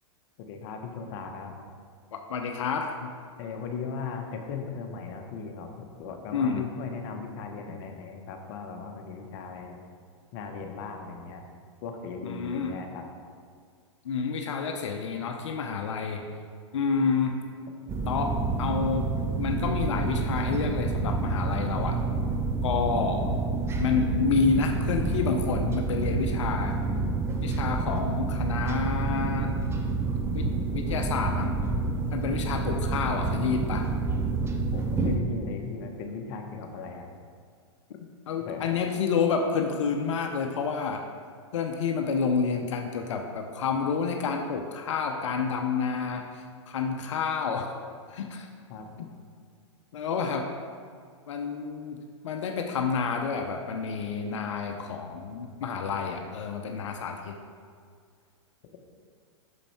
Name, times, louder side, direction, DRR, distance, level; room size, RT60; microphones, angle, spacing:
voice 1, 0.4-1.6 3.4-9.8 10.3-11.5 11.8-13.0 34.7-37.1 38.4-38.8 48.7-48.9, left 5 dB, 50° left, 3 dB, 1.0 m, -37 dB
voice 2, 2.1-3.1 6.3-6.6 12.2-12.7 14.0-16.2 16.7-17.4 18.1-19.1 19.3-22.0 22.6-23.3 23.8-26.8 27.4-29.6 30.3-31.6 32.1-33.9 38.3-41.0 41.5-47.7 48.1-48.5 49.0-49.1 49.9-50.5 51.3-52.0 52.2-57.4, left 5 dB, 70° left, 4 dB, 0.7 m, -29 dB
sound 1, 17.9-35.2, right 3 dB, 15° right, 0.6 m, -28 dB
6.3 x 5.3 x 4.3 m, 2.1 s
hypercardioid pair, 115°, 16 cm